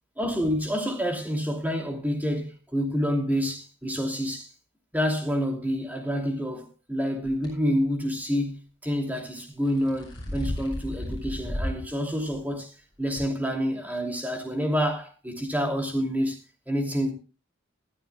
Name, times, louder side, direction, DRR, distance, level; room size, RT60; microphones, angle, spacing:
voice 1, 0.2-4.5 4.9-12.7 13.0-16.4 16.7-17.1, equal, 10° right, 2.8 m, -28 dB
sound 1, 7.2-7.5 9.5-11.9 12.3-12.4 13.2-13.3, equal, 20° left, 7.2 m, -33 dB
20.5 x 13.0 x 2.3 m
head